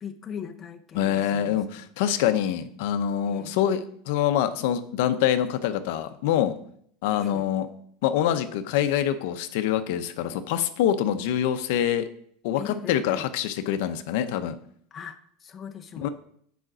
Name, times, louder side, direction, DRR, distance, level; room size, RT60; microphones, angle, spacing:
voice 1, 0.0-1.6 3.3-3.6 7.1-7.5 12.6-13.3 14.9-16.1, left 7 dB, 20° left, 5 dB, 0.6 m, -39 dB
voice 2, 0.9-6.6 7.0-7.7 8.0-12.1 12.4-14.6 16.0-16.1, left 10 dB, 65° left, 10 dB, 0.7 m, -25 dB
9.2 x 5.0 x 6.1 m, 0.64 s
supercardioid pair, 165°, 0 cm